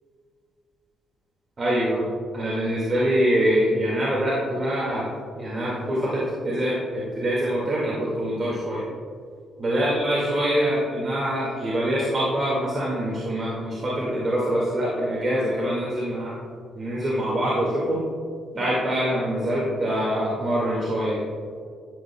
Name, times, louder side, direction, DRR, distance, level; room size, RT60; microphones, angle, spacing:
voice 1, 1.6-2.1 2.3-5.0 5.4-8.8 9.6-16.3 16.7-18.1 18.5-21.2, equal, 35° right, -7 dB, 2.1 m, -24 dB
13.0 x 8.1 x 2.3 m, 2.2 s
cardioid pair, 90°, 0 cm